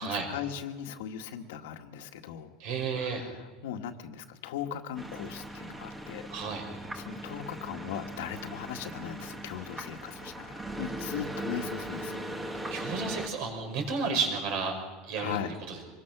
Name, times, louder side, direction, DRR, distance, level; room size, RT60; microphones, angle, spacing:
voice 1, 0.0-2.6 2.9-6.3 6.9-12.2 15.2-15.5, left 9 dB, 85° left, 5 dB, 1.8 m, -39 dB
voice 2, 2.6-3.2 6.3-6.6 12.5-14.7 15.0-15.4 15.7-15.8, right 5 dB, 55° right, 3 dB, 5.8 m, -32 dB
sound 1, 5.0-13.3, right 1 dB, 10° right, 1.6 m, -39 dB
25.5 x 21.5 x 6.2 m, 1.4 s
supercardioid pair, 165°, 0 cm